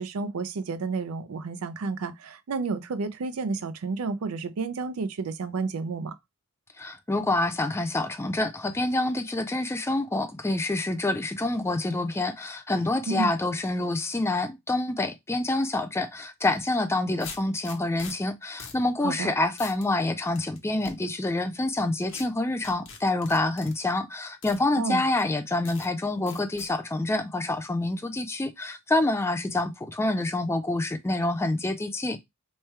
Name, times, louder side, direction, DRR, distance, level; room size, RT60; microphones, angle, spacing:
voice 1, 0.0-6.2 13.1-13.3 19.0-19.3 24.8-25.0, right 4 dB, 80° right, 0.5 m, -31 dB
voice 2, 6.8-32.2, left 2 dB, 10° left, 0.4 m, -27 dB
sound 1, 16.4-16.6 17.2-18.1 18.6-18.8 19.1-19.2 19.6-19.9 20.4-20.9 22.1-22.2 22.6-23.7 24.4-24.6 25.2-25.3 25.7-25.9 26.3-26.7, left 5 dB, 60° left, 1.0 m, -42 dB
3.2 x 2.2 x 4.2 m
head